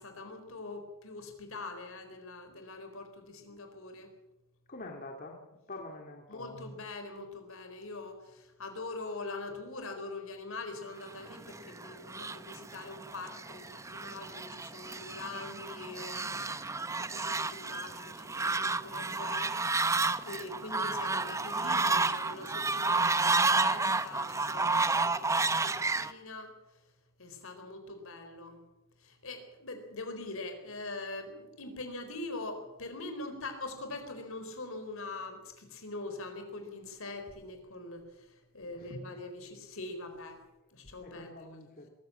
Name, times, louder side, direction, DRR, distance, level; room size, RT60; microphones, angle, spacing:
voice 1, 0.0-4.1 6.3-19.6 20.2-26.5 27.2-28.6 29.0-40.4 40.7-41.3, left 2 dB, 70° left, 7 dB, 4.2 m, -43 dB
voice 2, 4.7-5.4 5.7-6.6 38.7-38.9 41.0-41.9, left 2 dB, 40° left, 1 dB, 2.2 m, -45 dB
Fowl, 11.3-26.1, right 3 dB, 15° right, 0.6 m, -31 dB
22.0 x 14.5 x 8.6 m, 1.0 s
head